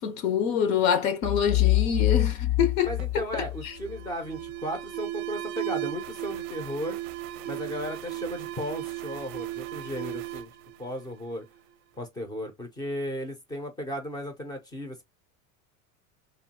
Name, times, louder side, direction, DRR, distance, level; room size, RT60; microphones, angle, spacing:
voice 1, 0.0-3.7, left 7 dB, 90° left, 0.9 m, -26 dB
sound 1, 1.2-4.1, left 16 dB, 65° left, 0.7 m, -25 dB
voice 2, 2.8-7.0 7.4-10.5 10.8-11.4 12.0-15.0, equal, 10° left, 0.4 m, -35 dB
Alarm, 3.0-11.6, right 15 dB, 55° right, 0.4 m, -36 dB
2.9 x 2.4 x 2.7 m
supercardioid pair, 155°, 39 cm